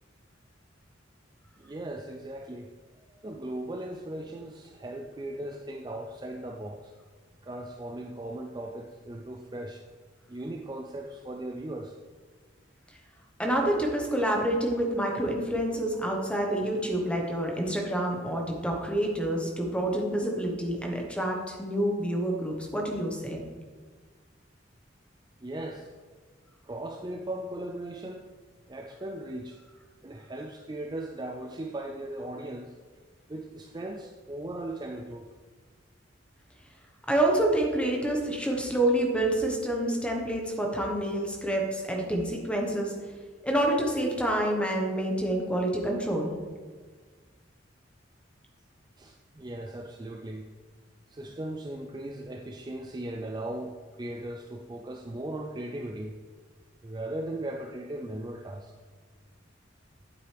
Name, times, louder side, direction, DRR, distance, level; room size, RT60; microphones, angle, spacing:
voice 1, 1.6-2.7 3.1-6.9 7.4-9.8 10.3-12.0 25.4-25.9 26.6-28.3 28.7-29.6 30.0-32.7 33.3-35.3 49.0-50.5 51.1-56.1 56.8-58.7, right 1 dB, 20° right, 4 dB, 0.4 m, -38 dB
voice 2, 13.4-23.4 37.1-42.9 43.4-46.4, right 1 dB, 5° left, 0 dB, 1.2 m, -28 dB
9.6 x 7.9 x 3.4 m, 1.5 s
head